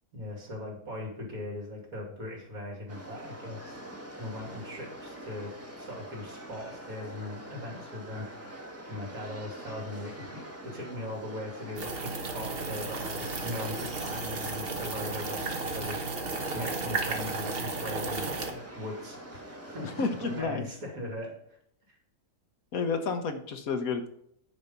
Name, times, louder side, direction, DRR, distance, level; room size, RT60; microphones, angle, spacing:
voice 1, 0.1-21.6 21.9-22.0, left 1 dB, 65° right, -1 dB, 3.2 m, -40 dB
sound 1, 2.9-20.4, right 1 dB, 10° right, 1.3 m, -44 dB
sound 2, 11.8-18.5, right 3 dB, 40° right, 1.3 m, -34 dB
voice 2, 20.0-20.7 22.7-24.1, left 4 dB, 65° left, 8 dB, 1.4 m, -30 dB
9.6 x 5.3 x 5.5 m, 0.72 s
omnidirectional pair, 1.6 m